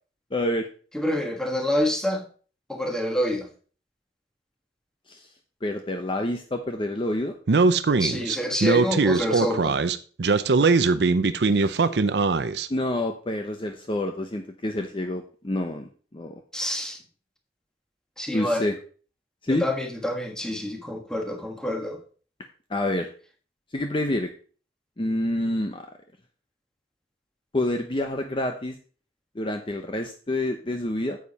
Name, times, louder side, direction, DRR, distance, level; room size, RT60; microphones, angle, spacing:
voice 1, 0.3-0.7 5.1-5.3 5.6-7.3 11.6-11.7 12.7-16.4 18.3-18.8 19.4-19.7 22.7-23.1 23.7-24.3 25.0-25.9 27.5-28.7 29.4-31.2, left 1 dB, 30° left, 0.8 m, -28 dB
voice 2, 0.9-2.2 2.7-3.5 8.0-9.8 16.5-17.0 18.2-18.7 19.5-22.0, left 1 dB, 5° left, 1.5 m, -27 dB
Speech, 7.5-12.7, right 4 dB, 70° right, 0.6 m, -21 dB
9.3 x 7.2 x 4.2 m
head